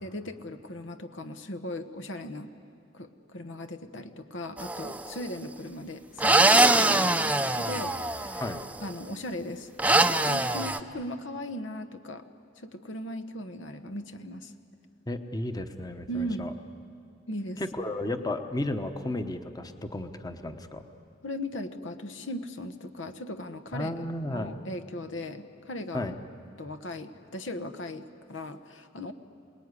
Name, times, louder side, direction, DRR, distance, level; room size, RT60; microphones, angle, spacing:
voice 1, 0.0-2.5 2.9-8.5 8.8-12.2 12.6-14.5 16.1-16.5 17.3-17.6 21.2-26.1 26.6-29.1, left 1 dB, 80° left, 8 dB, 1.2 m, -38 dB
sound 1, 4.6-5.1 6.2-8.6 9.8-10.8, right 2 dB, 10° right, 0.6 m, -23 dB
voice 2, 15.1-16.5 17.6-20.8 23.7-24.5 25.9-26.1, left 1 dB, 20° left, 7 dB, 1.0 m, -33 dB
27.5 x 19.5 x 9.7 m, 2.5 s
head